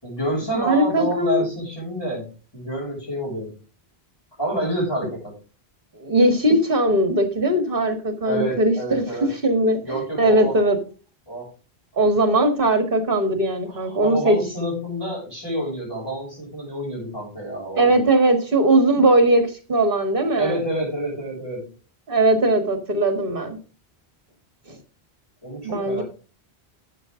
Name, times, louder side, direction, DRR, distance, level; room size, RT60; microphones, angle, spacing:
voice 1, 0.0-3.5 4.4-5.3 8.2-9.3 9.8-10.6 11.3-11.5 13.7-17.9 20.3-21.7 25.4-26.0, right 1 dB, 20° left, 6.6 m, -28 dB
voice 2, 0.5-1.5 6.0-9.0 9.4-10.8 12.0-14.4 17.8-20.6 22.1-23.6 25.6-26.0, right 1 dB, 55° right, 1.9 m, -19 dB
13.0 x 7.8 x 3.8 m
omnidirectional pair, 1.1 m